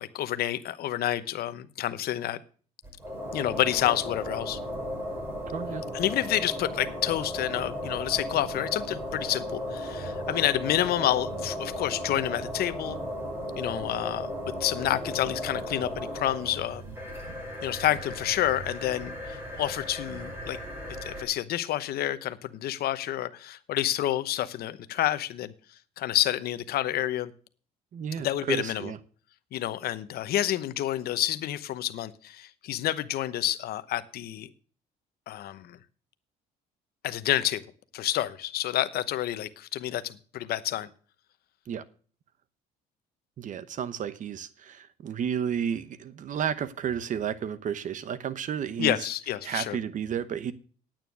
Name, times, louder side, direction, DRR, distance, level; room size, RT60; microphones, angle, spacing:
voice 1, 0.0-2.4 3.3-4.6 5.9-13.0 13.6-14.3 14.6-16.8 17.6-20.6 21.0-25.5 26.0-27.3 28.2-28.9 29.5-34.5 35.3-35.8 37.0-37.6 37.9-40.9 48.8-49.8, left 13 dB, 65° left, 13 dB, 0.9 m, -29 dB
sound 1, 2.8-21.2, equal, 15° right, 6.0 m, -36 dB
voice 2, 5.5-5.8 27.9-29.0 41.7-41.8 43.4-49.1 49.4-50.5, right 8 dB, 50° right, 15 dB, 1.0 m, -32 dB
9.2 x 9.0 x 6.2 m, 0.41 s
cardioid pair, 110°, 17 cm